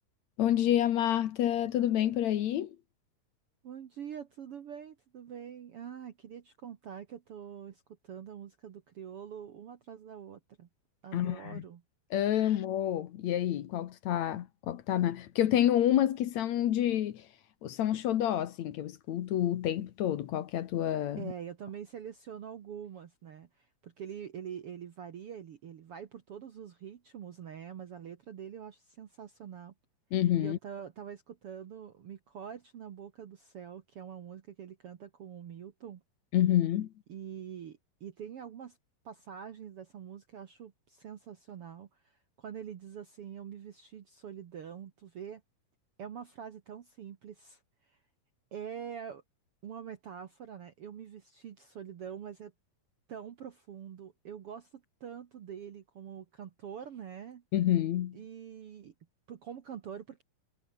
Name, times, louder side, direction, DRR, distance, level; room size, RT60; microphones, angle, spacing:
voice 1, 0.4-2.8 11.1-11.6 12.1-17.3 17.6-21.3 30.1-30.6 36.3-36.9 57.5-58.2, left 11 dB, 65° left, 2.1 m, -28 dB
voice 2, 3.6-10.7 11.0-11.8 21.2-29.7 30.4-36.0 37.1-38.8 39.0-45.4 46.0-47.6 47.9-48.0 48.5-49.2 49.6-52.5 53.1-57.4 58.1-58.9 59.3-60.2, right 8 dB, 55° right, 1.7 m, -45 dB
omnidirectional pair, 4.1 m